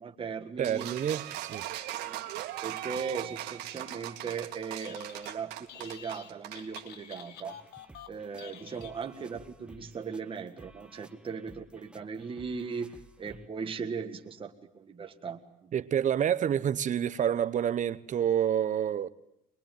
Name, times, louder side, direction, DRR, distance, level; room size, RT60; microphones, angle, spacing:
voice 1, 0.0-0.9 2.0-2.2 2.6-7.6 8.1-15.7, right 5 dB, 30° right, 1.7 m, -38 dB
voice 2, 0.6-1.7 15.7-19.1, right 9 dB, 45° right, 1.0 m, -28 dB
sound 1, 0.6-6.9, right 14 dB, 90° right, 2.1 m, -39 dB
Telephone, 4.6-5.4 5.7-9.4, left 9 dB, 85° left, 1.7 m, -49 dB
sound 2, 7.4-13.5, right 1 dB, 5° right, 1.0 m, -54 dB
22.5 x 21.0 x 9.2 m
cardioid pair, 110°, 17 cm